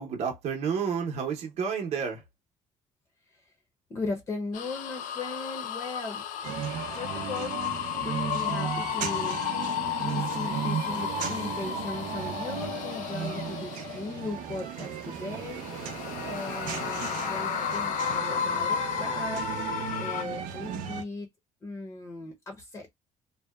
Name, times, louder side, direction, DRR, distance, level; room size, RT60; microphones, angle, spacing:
voice 1, 0.0-2.2, right 6 dB, 50° right, 0.7 m, -30 dB
voice 2, 3.9-6.5 7.0-7.6 8.0-9.6 10.0-21.3 21.6-22.9, left 3 dB, 20° left, 0.5 m, -38 dB
sound 1, 4.5-14.4 15.0-20.2, left 9 dB, 70° left, 0.5 m, -33 dB
sound 2, 6.4-21.0, right 9 dB, 85° right, 0.5 m, -35 dB
2.6 x 2.1 x 2.2 m
cardioid pair, 170°, 14 cm